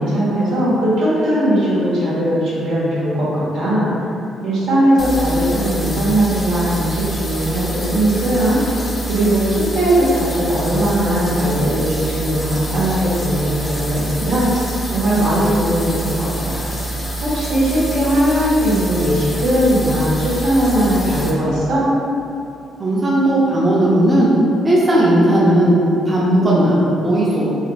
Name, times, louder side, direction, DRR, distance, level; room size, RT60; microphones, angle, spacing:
voice 1, 0.0-3.9 4.4-8.8 9.1-14.6 14.9-16.5 17.2-21.9, right 1 dB, 85° right, -9 dB, 1.2 m, -18 dB
sound 1, 5.0-21.3, right 1 dB, 25° left, 0.5 m, -26 dB
voice 2, 22.8-24.3 24.6-25.8 26.1-26.8 27.0-27.5, right 1 dB, 25° right, -6 dB, 0.5 m, -15 dB
3.2 x 2.8 x 2.3 m, 2.7 s
cardioid pair, 90°, 0 cm